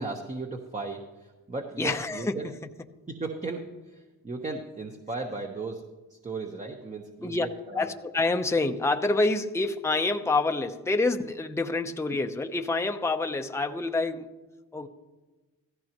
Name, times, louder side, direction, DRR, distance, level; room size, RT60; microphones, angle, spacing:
voice 1, 0.0-2.5 3.1-7.9, right 3 dB, 25° right, 2 dB, 1.1 m, -36 dB
voice 2, 1.8-2.4 7.2-7.5 7.7-14.3 14.7-14.9, left 3 dB, 10° left, 5 dB, 0.8 m, -27 dB
15.5 x 14.0 x 3.0 m, 1.2 s
cardioid pair, 90°, 30 cm